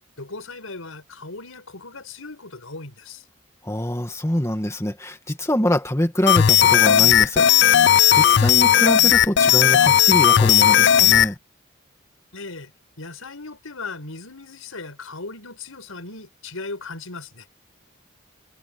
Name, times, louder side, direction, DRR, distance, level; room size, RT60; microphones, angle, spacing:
voice 1, 0.2-3.2 12.3-12.7 13.0-17.5, left 3 dB, 90° left, 5.9 m, -37 dB
voice 2, 3.6-7.5 7.8-11.4, equal, 15° left, 2.0 m, -25 dB
sound 1, 6.3-11.3, left 10 dB, 55° left, 0.4 m, -15 dB
head